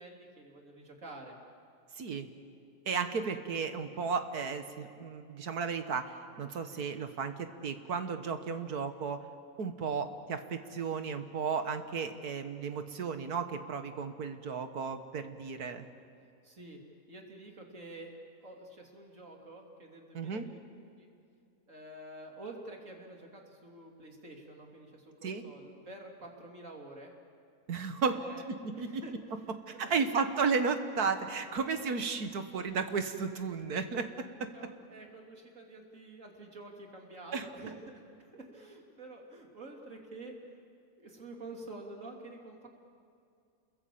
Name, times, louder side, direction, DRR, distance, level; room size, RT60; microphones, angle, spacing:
voice 1, 0.0-1.4 16.4-16.8 17.1-18.2 18.4-20.6 21.0-21.1 21.7-27.1 28.1-28.5 28.7-30.1 31.6-31.7 34.5-40.6 41.0-42.7, right 2 dB, 55° right, 1 dB, 3.5 m, -49 dB
voice 2, 2.0-2.3 2.9-9.2 9.6-15.9 20.1-20.5 25.2-25.4 27.7-28.2 28.5-29.0 29.9-34.3 37.3-37.4, right 5 dB, 75° right, 8 dB, 1.9 m, -34 dB
29.0 x 22.0 x 8.6 m, 2.5 s
omnidirectional pair, 1.7 m